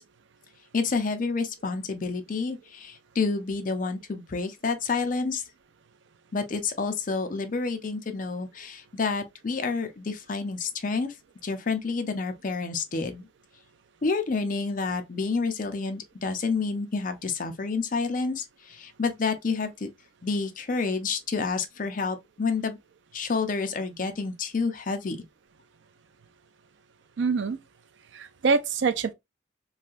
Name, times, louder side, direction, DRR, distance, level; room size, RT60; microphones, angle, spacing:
voice 1, 0.7-5.4 6.3-11.1 11.4-13.3 14.0-19.9 20.2-22.8 23.1-25.2, left 4 dB, 45° left, 0.5 m, -29 dB
voice 2, 27.2-27.6 28.1-29.1, right 4 dB, 70° right, 0.4 m, -25 dB
3.1 x 2.6 x 2.4 m
head